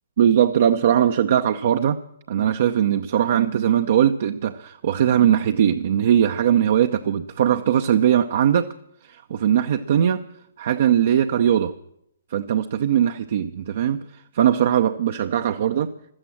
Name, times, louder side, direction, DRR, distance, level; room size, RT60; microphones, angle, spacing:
voice 1, 0.2-2.0 2.3-8.7 9.1-10.2 10.6-11.7 12.3-14.0 14.3-15.9, right 9 dB, 45° right, 6 dB, 0.7 m, -20 dB
15.0 x 12.5 x 7.5 m, 0.73 s
figure-of-eight pair, 125°, 0 cm